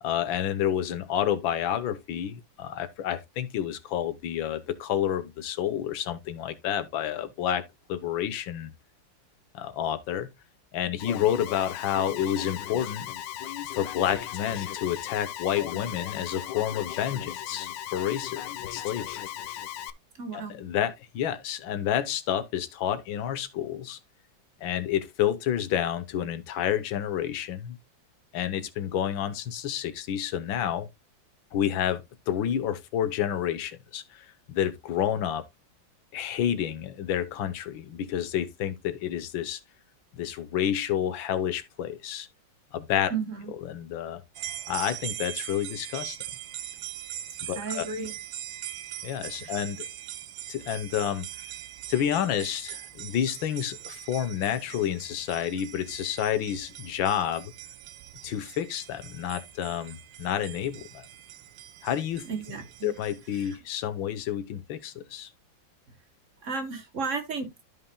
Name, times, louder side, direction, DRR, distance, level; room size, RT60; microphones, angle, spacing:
voice 1, 0.0-7.6 7.9-8.7 9.5-10.3 10.7-13.1 13.7-19.2 20.3-24.0 24.6-27.8 28.3-30.9 31.5-35.4 36.1-39.6 40.1-42.3 42.7-43.1 43.6-44.2 44.7-46.2 47.4-47.9 49.0-49.9 50.5-51.3 51.9-57.5 58.2-61.1 61.8-62.2 62.8-65.3, left 10 dB, 90° left, 1.7 m, -29 dB
Alarm, 11.0-19.9, left 11 dB, 75° left, 1.3 m, -37 dB
voice 2, 20.2-20.5 43.1-43.4 47.5-48.1 49.4-49.5 62.3-62.9 63.4-63.5 66.4-67.6, right 4 dB, 45° right, 1.3 m, -33 dB
sound 1, 44.3-63.6, right 12 dB, 80° right, 1.4 m, -41 dB
13.5 x 5.5 x 2.2 m
omnidirectional pair, 2.1 m